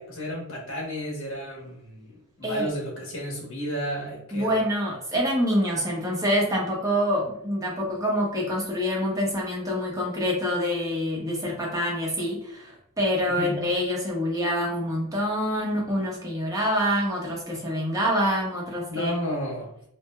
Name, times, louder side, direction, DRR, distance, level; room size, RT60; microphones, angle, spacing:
voice 1, 0.0-4.5 13.4-13.5 18.9-19.7, equal, 65° left, -2 dB, 1.1 m, -32 dB
voice 2, 4.3-19.1, equal, 15° right, -3 dB, 0.8 m, -26 dB
4.5 x 2.1 x 2.2 m, 0.72 s
head